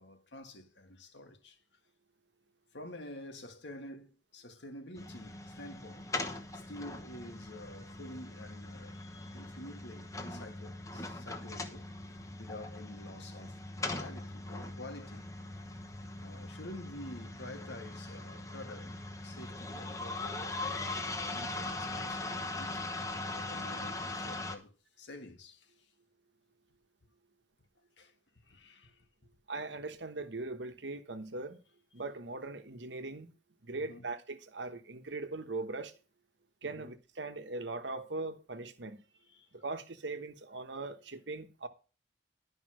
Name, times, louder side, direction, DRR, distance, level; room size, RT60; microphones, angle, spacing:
voice 1, 0.0-1.6 2.7-6.1 6.5-11.9 12.4-13.6 13.9-15.2 16.2-18.9 19.2-22.9 23.3-24.7 25.0-25.7 28.0-28.1 28.5-29.0 33.7-34.0 36.6-36.9 39.3-39.5, left 1 dB, 75° left, 1.6 m, -49 dB
sound 1, 4.9-24.6, left 2 dB, 15° left, 1.0 m, -40 dB
voice 2, 29.5-31.6 31.9-33.3 33.6-35.9 36.6-39.0 39.5-41.7, right 3 dB, 75° right, 1.1 m, -40 dB
11.5 x 5.4 x 6.3 m
head